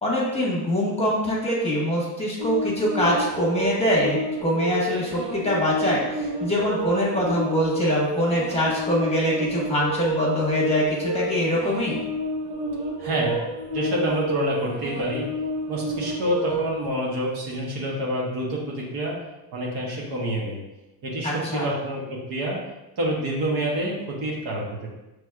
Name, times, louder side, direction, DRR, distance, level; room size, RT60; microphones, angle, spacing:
voice 1, 0.0-12.0 21.2-21.7, equal, 15° left, -5 dB, 1.4 m, -24 dB
sound 1, 2.4-16.9, equal, 70° right, 1.1 m, -30 dB
voice 2, 13.0-13.4 13.7-15.3 15.7-19.2 19.5-20.6 21.0-22.6 23.0-24.9, right 1 dB, 55° right, -3 dB, 1.3 m, -27 dB
6.0 x 3.3 x 2.4 m, 0.99 s
cardioid pair, 105°, 46 cm